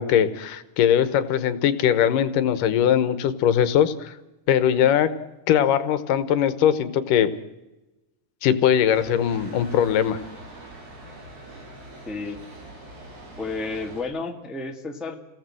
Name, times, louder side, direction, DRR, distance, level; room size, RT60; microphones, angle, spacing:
voice 1, 0.0-4.1 4.5-5.2 5.5-7.3 8.4-10.2, left 9 dB, 85° left, 13 dB, 2.8 m, -20 dB
sound 1, 8.9-14.0, right 1 dB, 70° right, 6.5 m, -43 dB
voice 2, 12.1-12.4 13.4-15.2, left 3 dB, ahead, 3 dB, 1.2 m, -31 dB
29.0 x 18.0 x 7.8 m, 1.0 s
omnidirectional pair, 3.7 m